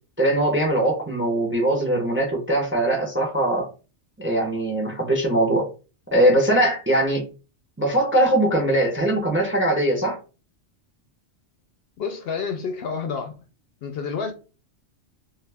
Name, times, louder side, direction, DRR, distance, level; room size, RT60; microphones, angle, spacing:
voice 1, 0.2-3.7 4.2-5.7 6.1-7.3 7.8-10.2, right 1 dB, 15° right, 0.5 m, -21 dB
voice 2, 12.0-13.3 13.8-14.3, left 5 dB, 65° left, 0.7 m, -29 dB
2.4 x 2.3 x 3.3 m
omnidirectional pair, 1.2 m